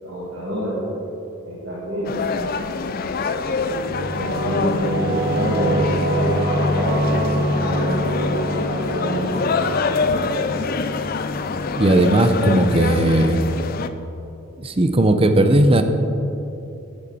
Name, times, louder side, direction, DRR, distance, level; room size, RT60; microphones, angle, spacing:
voice 1, 0.0-0.9 1.4-2.3 2.7-2.9 4.1-10.3, equal, 65° right, -8 dB, 2.4 m, -29 dB
sound 1, 2.0-13.9, left 4 dB, 45° left, 0.4 m, -25 dB
Singing / Musical instrument, 3.2-12.3, right 1 dB, 50° right, 1.4 m, -25 dB
voice 2, 11.8-13.4 14.6-15.8, right 1 dB, 25° right, 8 dB, 0.6 m, -16 dB
10.0 x 9.9 x 4.2 m, 2.9 s
head